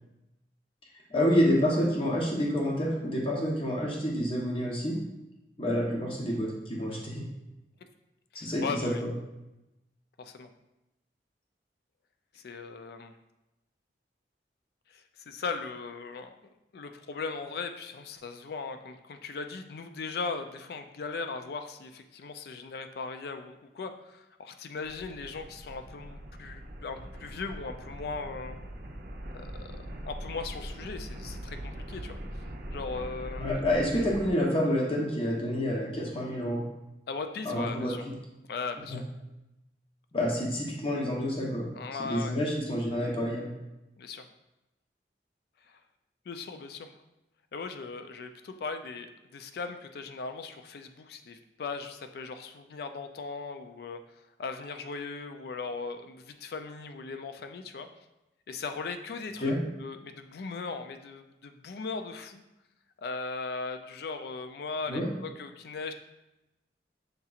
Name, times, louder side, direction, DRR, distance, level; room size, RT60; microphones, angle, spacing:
voice 1, 1.1-5.0 5.6-7.2 8.3-9.1 33.4-36.6 37.4-37.9 38.9-39.0 40.1-41.7 42.0-43.5 59.4-59.6 64.9-65.1, equal, 30° left, -2 dB, 0.8 m, -28 dB
voice 2, 8.3-9.0 10.2-10.5 12.3-13.1 14.9-16.3 16.7-28.6 29.3-32.2 32.7-33.6 37.1-38.0 38.5-39.0 41.7-42.4 44.0-44.3 45.7-45.8 46.3-47.0 47.5-54.0 54.4-57.9 58.5-59.5 59.8-62.4 63.0-65.9, left 4 dB, 60° left, 8 dB, 0.3 m, -38 dB
sound 1, 24.8-34.3, right 1 dB, 55° right, 0.5 m, -41 dB
6.5 x 2.8 x 2.4 m, 0.95 s
head